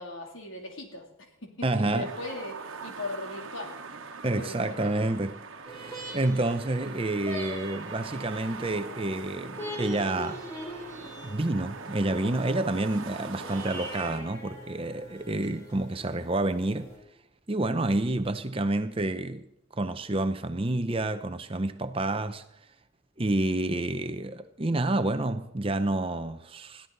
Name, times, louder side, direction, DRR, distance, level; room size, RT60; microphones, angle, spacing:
voice 1, 0.0-3.7 4.4-5.0, left 2 dB, 70° left, 3.1 m, -39 dB
voice 2, 1.6-2.1 4.2-5.4 5.7-10.4 11.2-16.9 17.5-19.5 19.8-22.4 23.2-26.9, right 2 dB, 25° right, 0.7 m, -29 dB
sound 1, 2.0-14.2, right 4 dB, 70° right, 1.2 m, -42 dB
sound 2, 5.6-17.0, equal, 15° left, 3.9 m, -43 dB
21.5 x 14.0 x 4.0 m
head